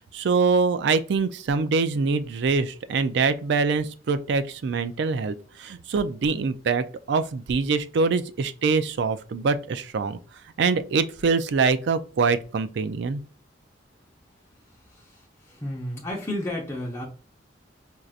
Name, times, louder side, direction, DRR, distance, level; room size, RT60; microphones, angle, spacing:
voice 1, 0.1-10.2 10.6-13.2, right 4 dB, 65° right, 0.4 m, -24 dB
voice 2, 14.7-17.0, left 1 dB, 15° left, 0.8 m, -33 dB
4.5 x 2.6 x 2.4 m
head